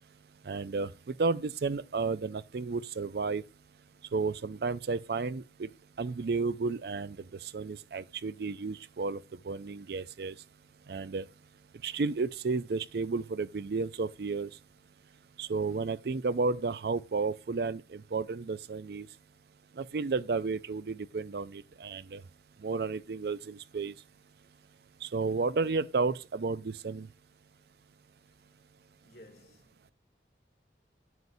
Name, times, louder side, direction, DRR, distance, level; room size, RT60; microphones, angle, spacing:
voice 1, 0.4-3.4 4.1-5.7 6.0-10.3 10.9-11.3 11.8-14.5 15.4-19.1 19.8-22.2 22.6-23.9 25.0-27.1, right 4 dB, 60° right, 0.4 m, -32 dB
voice 2, 29.0-29.9, left 1 dB, 60° left, 1.8 m, -56 dB
9.4 x 8.0 x 2.6 m
head